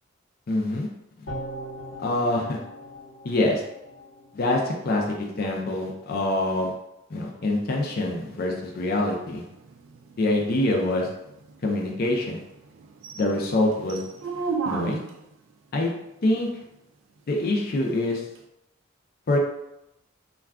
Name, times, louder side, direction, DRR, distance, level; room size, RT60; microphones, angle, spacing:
voice 1, 0.5-0.9 2.0-2.6 3.2-3.6 4.3-6.7 7.1-9.4 10.2-11.1 11.6-12.4 13.2-14.0 14.6-15.0 15.7-15.9 16.2-16.5 17.3-18.3 19.3-19.4, left 2 dB, 45° left, 0 dB, 0.4 m, -25 dB
sound 1, 1.3-4.6 5.0-5.1, equal, 70° left, 0.8 m, -40 dB
sound 2, 7.4-15.3 18.4-18.5, right 4 dB, 65° right, 0.3 m, -37 dB
2.3 x 2.3 x 3.4 m, 0.88 s
head